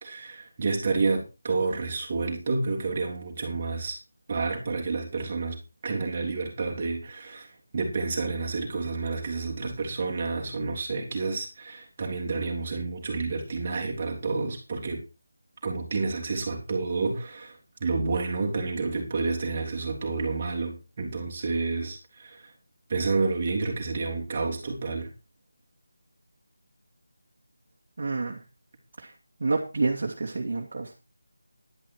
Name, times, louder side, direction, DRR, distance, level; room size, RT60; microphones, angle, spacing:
voice 1, 0.0-4.0 4.3-15.0 15.6-22.5 22.9-25.1, right 3 dB, 25° right, 0 dB, 3.3 m, -29 dB
voice 2, 28.0-28.4 29.0-29.1 29.4-30.9, right 3 dB, 45° right, 1 dB, 2.3 m, -28 dB
11.5 x 10.5 x 4.6 m, 0.29 s
figure-of-eight pair, 175°, 0 cm